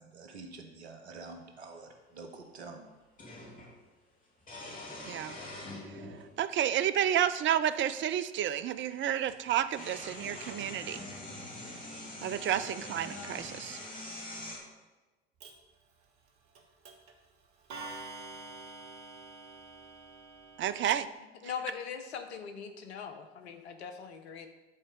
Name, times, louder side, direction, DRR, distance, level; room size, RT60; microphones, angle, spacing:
voice 1, 0.0-2.8, right 3 dB, 85° right, 4 dB, 1.0 m, -47 dB
sound 1, 1.5-1.6 3.2-3.7 4.4-6.3 7.2-7.3 8.8-8.9 9.2-14.6, left 1 dB, 25° left, 3.0 m, -44 dB
voice 2, 5.0-5.4 6.4-11.0 12.2-13.8 20.6-21.1, right 10 dB, 35° right, 12 dB, 0.5 m, -30 dB
Clock, 15.4-15.5 16.6-16.7 16.9-17.1 17.7-21.0, right 3 dB, 60° right, 1.3 m, -46 dB
voice 3, 21.4-24.5, left 7 dB, 75° left, 7 dB, 0.9 m, -41 dB
10.0 x 4.3 x 5.2 m, 1.2 s
figure-of-eight pair, 60°, 32 cm